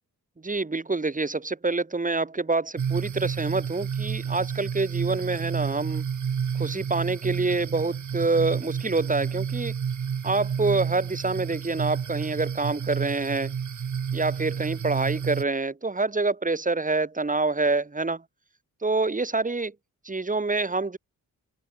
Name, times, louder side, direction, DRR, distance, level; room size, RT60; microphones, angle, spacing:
voice 1, 0.4-6.0 6.5-9.7 10.2-13.5 14.1-18.2 18.8-19.7 20.0-21.0, right 3 dB, 25° right, 6.1 m, -26 dB
sound 1, 2.8-15.4, right 7 dB, 65° right, 4.5 m, -30 dB
open air
wide cardioid pair, 135°, 33 cm